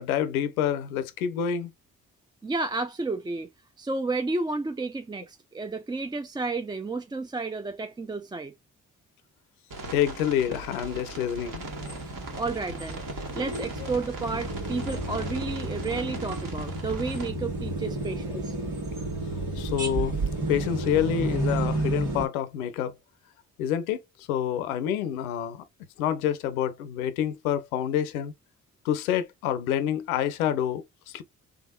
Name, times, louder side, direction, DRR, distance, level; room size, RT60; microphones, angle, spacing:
voice 1, 0.0-1.7 9.9-11.7 19.6-20.2 20.5-22.9 23.6-24.0 24.3-25.6 26.0-28.3 28.8-31.2, left 9 dB, 90° left, 0.5 m, -27 dB
voice 2, 2.4-3.5 3.8-8.5 12.0-18.6, right 3 dB, 10° right, 0.4 m, -32 dB
sound 1, 9.7-17.3, right 2 dB, 50° right, 1.6 m, -39 dB
sound 2, 11.6-22.3, right 2 dB, 80° right, 2.1 m, -32 dB
3.5 x 3.3 x 2.2 m
hypercardioid pair, 40°, 41 cm